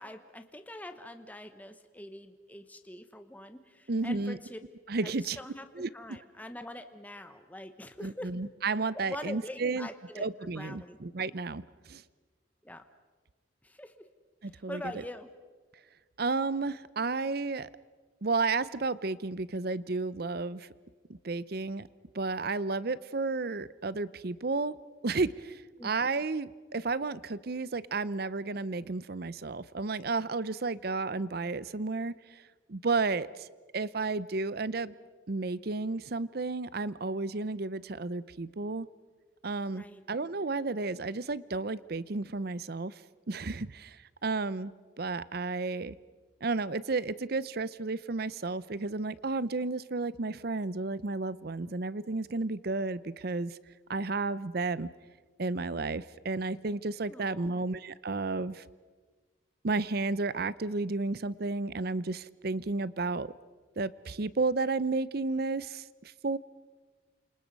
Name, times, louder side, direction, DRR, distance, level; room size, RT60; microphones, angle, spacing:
voice 1, 0.0-4.6 5.0-8.4 8.9-11.0 12.6-12.8 13.6-14.1 14.5-15.3 25.8-25.9 39.7-40.0 57.1-57.6, left 1 dB, 10° left, 8 dB, 1.0 m, -44 dB
voice 2, 3.9-4.4 4.9-5.4 5.8-5.9 8.0-9.9 10.2-11.6 11.9-12.0 14.4-14.8 16.2-17.7 18.2-20.7 21.2-21.9 22.1-24.7 25.0-32.1 32.7-33.5 33.7-34.9 35.3-38.9 39.4-42.9 43.3-44.7 45.0-46.0 46.4-53.6 53.9-54.9 55.4-58.6 59.6-63.3 63.8-66.4, right 3 dB, 50° right, 18 dB, 0.6 m, -32 dB
28.5 x 27.0 x 5.3 m, 1.4 s
head